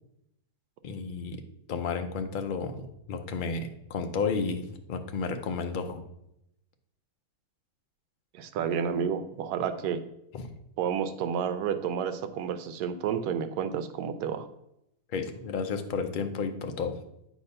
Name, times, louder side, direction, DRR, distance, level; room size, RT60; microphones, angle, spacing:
voice 1, 0.8-1.4 1.7-2.8 3.1-6.0 10.3-10.4 15.1-16.9, left 5 dB, 60° left, 6 dB, 0.5 m, -32 dB
voice 2, 8.3-10.0 10.8-14.5, right 7 dB, 85° right, 9 dB, 1.1 m, -30 dB
8.2 x 2.8 x 5.4 m, 0.81 s
omnidirectional pair, 1.7 m